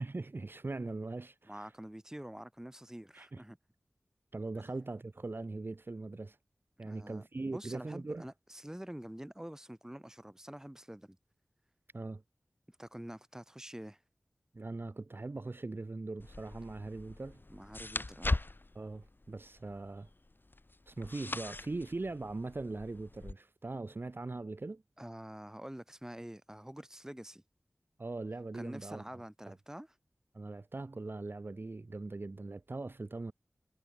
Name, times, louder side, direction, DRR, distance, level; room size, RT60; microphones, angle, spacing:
voice 1, 0.0-1.7 3.1-3.4 4.3-6.4 6.8-8.2 11.9-12.2 14.5-17.4 18.7-20.1 20.9-24.8 28.0-29.0 30.3-33.3, right 3 dB, 50° right, 0.7 m, -40 dB
voice 2, 1.5-3.6 6.8-11.2 12.7-14.0 17.5-18.4 25.0-27.4 28.5-29.9, right 1 dB, 10° right, 1.6 m, -47 dB
sound 1, 16.2-23.3, left 2 dB, 45° left, 2.3 m, -40 dB
cardioid pair, 40°, 5 cm